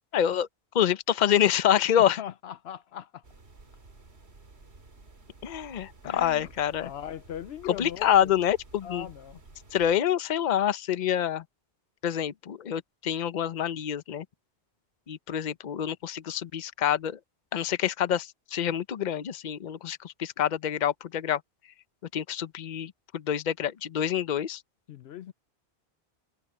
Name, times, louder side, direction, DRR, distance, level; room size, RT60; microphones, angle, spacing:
voice 1, 0.1-0.5 0.7-2.2 5.4-6.9 7.8-9.1 9.7-11.4 12.0-14.2 15.1-17.2 17.5-21.4 22.1-24.6, left 10 dB, 50° left, 0.8 m, -27 dB
voice 2, 2.0-3.2 6.0-6.5 6.8-8.3 8.8-9.4 24.9-25.3, left 9 dB, 75° left, 0.9 m, -39 dB
sound 1, 3.2-10.0, right 3 dB, 85° right, 2.5 m, -53 dB
omnidirectional pair, 1.1 m